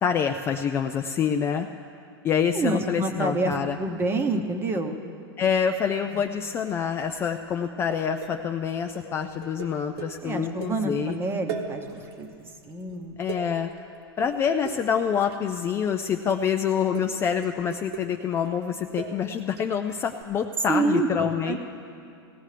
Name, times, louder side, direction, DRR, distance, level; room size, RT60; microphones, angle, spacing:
voice 1, 0.0-1.7 2.2-3.8 5.4-11.2 13.2-13.7 14.2-21.6, left 7 dB, 20° left, 5 dB, 0.3 m, -26 dB
voice 2, 2.5-5.0 6.1-6.2 10.2-12.3 12.7-13.2 20.7-21.6, right 3 dB, 15° right, 6 dB, 0.9 m, -27 dB
sound 1, 6.2-6.8 7.0-7.4 7.6-11.2 11.5-12.3 12.6-15.8 16.3-16.6 16.9-19.8 20.2-20.3, right 6 dB, 80° right, 1.6 m, -39 dB
19.0 x 15.0 x 3.3 m, 2.5 s
hypercardioid pair, 140°, 13 cm